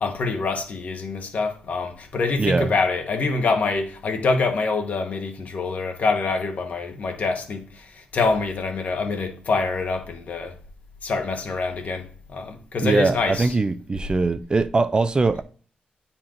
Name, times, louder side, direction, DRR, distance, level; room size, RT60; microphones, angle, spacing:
voice 1, 0.0-10.6 11.0-13.5, left 3 dB, 60° left, 1.5 m, -25 dB
voice 2, 2.4-2.7 12.8-15.4, right 3 dB, 30° right, 0.5 m, -21 dB
8.8 x 4.4 x 3.8 m
cardioid pair, 95°, 3 cm